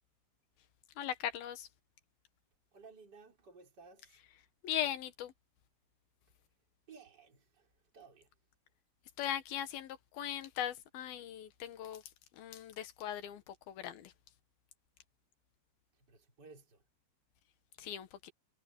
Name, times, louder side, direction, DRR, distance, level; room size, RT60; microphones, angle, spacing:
voice 1, 1.0-1.7 4.6-5.3 9.2-12.0 12.4-14.1 17.8-18.3, left 11 dB, 75° left, 3.2 m, -39 dB
voice 2, 2.7-4.3 6.9-8.3 15.9-16.8, right 4 dB, 25° right, 5.1 m, -57 dB
omnidirectional pair, 4.5 m